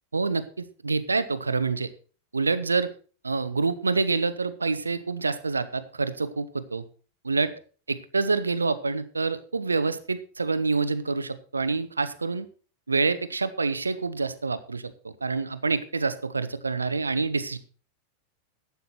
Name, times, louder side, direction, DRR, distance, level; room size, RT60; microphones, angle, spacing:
voice 1, 0.1-1.9 2.3-2.9 3.2-6.8 7.2-7.5 7.9-12.5 12.9-17.6, right 4 dB, 80° right, 14 dB, 1.0 m, -27 dB
12.0 x 8.5 x 5.9 m, 0.38 s
figure-of-eight pair, 90°, 0 cm